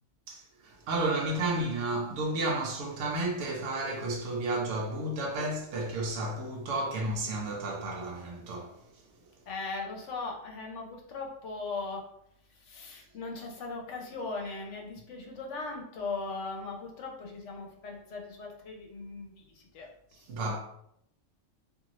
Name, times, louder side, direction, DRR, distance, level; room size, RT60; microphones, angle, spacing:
voice 1, 0.3-8.8 20.3-20.6, right 2 dB, 80° right, 0.9 m, -32 dB
voice 2, 9.5-12.0 12.5-19.9, left 3 dB, 75° left, 1.0 m, -39 dB
2.6 x 2.6 x 3.0 m
omnidirectional pair, 1.2 m